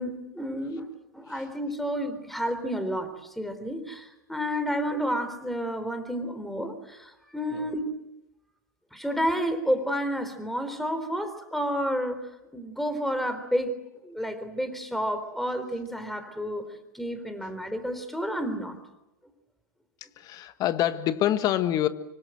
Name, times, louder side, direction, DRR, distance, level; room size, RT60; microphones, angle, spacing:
voice 1, 0.0-7.9 8.9-12.2 12.5-13.7 14.0-16.6 16.9-18.8, equal, ahead, 10 dB, 3.8 m, -30 dB
voice 2, 20.2-21.9, left 12 dB, 35° left, 12 dB, 1.6 m, -26 dB
25.5 x 24.5 x 7.8 m, 0.92 s
hypercardioid pair, 105°, 11 cm